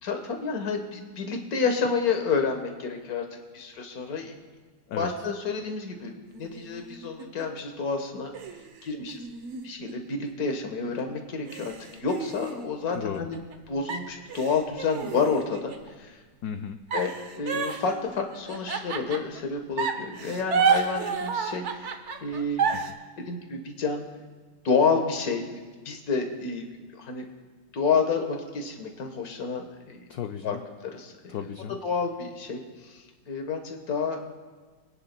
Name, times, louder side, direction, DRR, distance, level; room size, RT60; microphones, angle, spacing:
voice 1, 0.0-4.3 5.0-6.1 6.4-8.3 8.8-9.2 9.6-11.7 12.0-13.4 13.7-15.7 16.0-16.1 16.9-21.9 22.2-22.7 23.3-24.0 24.6-25.4 25.8-26.6 26.9-27.3 27.7-30.0 30.4-30.6 30.8-31.1 31.8-34.2, left 5 dB, 50° left, 4 dB, 1.6 m, -29 dB
sound 1, 6.3-7.6 8.3-10.5 11.0-11.1 11.5-13.5 13.9-15.9 16.9-19.4 19.8-22.9, right 5 dB, 65° right, 0.7 m, -30 dB
voice 2, 12.9-13.3 16.4-16.8 22.7-22.8 30.1-30.6 31.3-31.8, left 8 dB, 85° left, 7 dB, 0.8 m, -34 dB
25.5 x 10.0 x 2.2 m, 1.4 s
omnidirectional pair, 2.2 m